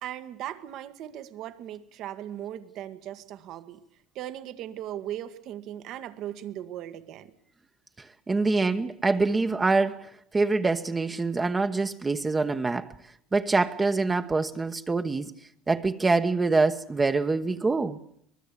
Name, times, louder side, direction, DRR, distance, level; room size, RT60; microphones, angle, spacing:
voice 1, 0.0-3.8 4.2-7.3, right 11 dB, 60° right, 1.8 m, -38 dB
voice 2, 8.0-12.9 13.3-15.3 15.7-18.0, right 3 dB, 20° right, 1.1 m, -25 dB
24.0 x 19.5 x 8.5 m
supercardioid pair, 95°, 0 cm